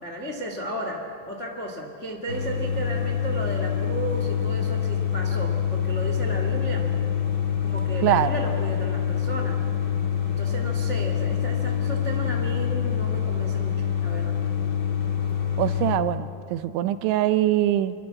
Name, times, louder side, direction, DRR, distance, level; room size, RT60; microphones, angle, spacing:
voice 1, 0.0-6.9 7.6-9.6 10.2-14.4, right 1 dB, 70° left, 2 dB, 0.6 m, -34 dB
sound 1, 2.3-16.0, left 8 dB, 55° left, 1.0 m, -26 dB
voice 2, 8.0-8.3 15.6-18.0, right 13 dB, 80° right, 12 dB, 3.0 m, -23 dB
26.5 x 23.5 x 7.7 m, 2.7 s
omnidirectional pair, 5.6 m